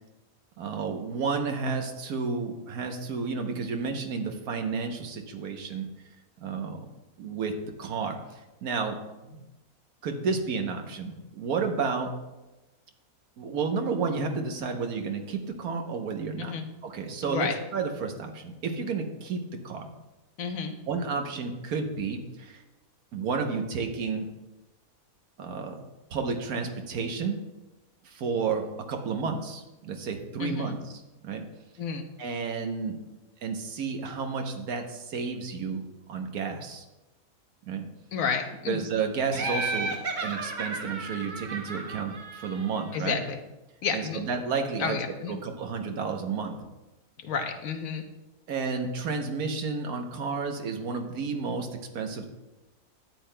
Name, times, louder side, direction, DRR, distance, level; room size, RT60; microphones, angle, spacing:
voice 1, 0.6-5.9 6.4-6.8 7.2-9.4 10.0-12.1 13.4-16.5 16.8-19.9 20.9-22.6 23.1-24.3 25.4-25.8 26.1-27.4 28.0-31.5 32.2-33.0 33.4-35.8 36.1-36.8 37.6-37.9 38.6-43.2 43.9-45.0 45.3-46.6 48.5-52.3, right 5 dB, 90° right, 4 dB, 1.4 m, -31 dB
voice 2, 17.3-17.6 20.4-20.7 30.4-30.7 31.8-32.1 38.1-38.8 42.9-43.4 43.8-44.2 44.8-45.4 47.2-48.0, left 6 dB, 70° left, 6 dB, 1.2 m, -31 dB
Laughter, 39.3-43.0, right 3 dB, 40° right, 0.9 m, -33 dB
12.5 x 9.1 x 2.2 m, 1.0 s
omnidirectional pair, 1.5 m